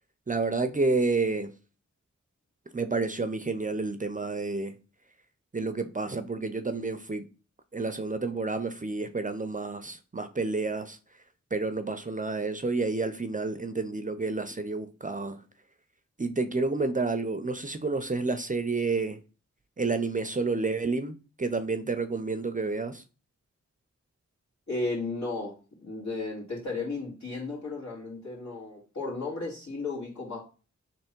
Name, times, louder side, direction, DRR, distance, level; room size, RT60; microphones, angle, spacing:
voice 1, 0.3-1.5 2.7-4.7 5.5-7.2 7.7-11.0 11.5-15.4 16.2-19.2 19.8-23.0, right 3 dB, 30° right, 0.5 m, -30 dB
voice 2, 24.7-25.6 25.8-30.4, left 3 dB, 70° left, 2.3 m, -34 dB
3.4 x 3.0 x 4.4 m
wide cardioid pair, 55°, 29 cm